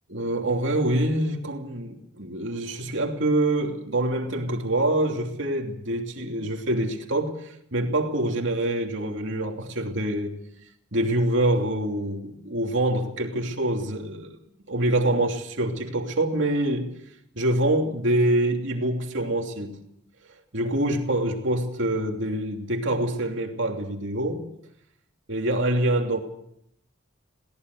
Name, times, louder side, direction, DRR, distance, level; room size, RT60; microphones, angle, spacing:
voice 1, 0.1-10.4 10.9-14.4 14.7-16.9 17.3-19.8 20.5-24.4 25.3-26.2, right 1 dB, 60° right, 2.9 m, -25 dB
22.0 x 18.0 x 6.6 m
head